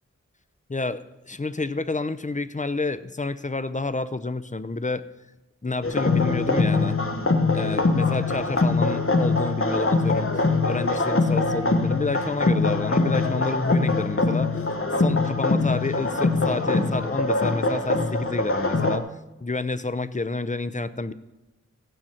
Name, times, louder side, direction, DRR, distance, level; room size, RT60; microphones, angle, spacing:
voice 1, 0.7-5.1 5.6-7.0 7.5-14.6 15.0-21.1, left 3 dB, 25° left, 13 dB, 0.6 m, -29 dB
sound 1, 5.8-19.0, left 3 dB, 45° left, 1.0 m, -23 dB
15.0 x 8.9 x 4.4 m, 0.97 s
wide cardioid pair, 45°, 29 cm